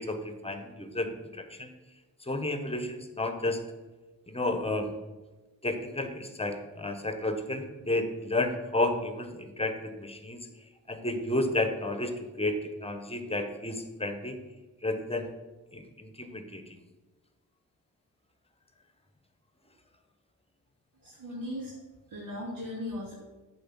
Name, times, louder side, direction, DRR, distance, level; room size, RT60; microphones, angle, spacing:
voice 1, 0.0-1.7 2.2-3.6 4.3-5.0 5.6-10.4 10.9-14.4 14.8-15.3 15.7-16.6, left 2 dB, 15° left, 7 dB, 1.1 m, -32 dB
voice 2, 21.0-21.7 22.1-23.1, left 1 dB, 80° right, -9 dB, 2.8 m, -37 dB
8.6 x 4.4 x 7.4 m, 1.2 s
cardioid pair, 70°, 34 cm